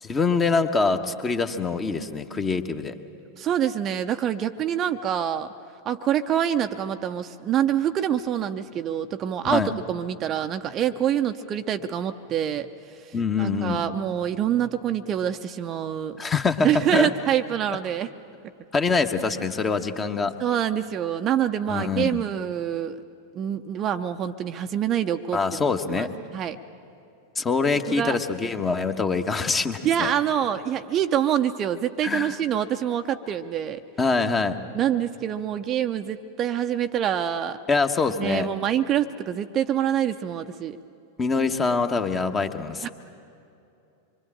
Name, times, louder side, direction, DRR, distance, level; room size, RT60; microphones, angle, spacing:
voice 1, 0.0-3.0 9.5-9.7 13.1-13.8 16.2-17.1 18.7-20.3 21.7-22.2 25.3-26.1 27.4-30.1 32.0-32.4 34.0-34.6 37.7-38.5 41.2-42.9, left 4 dB, 20° left, 7 dB, 1.3 m, -24 dB
voice 2, 3.4-5.5 5.9-9.6 9.9-16.2 16.6-18.1 20.4-23.0 23.3-26.1 26.3-26.6 27.9-28.2 29.8-33.8 34.7-37.6 38.2-40.8 42.8-42.9, right 10 dB, 30° right, 8 dB, 0.7 m, -26 dB
25.5 x 23.5 x 8.8 m, 2.7 s
figure-of-eight pair, 90°, 0 cm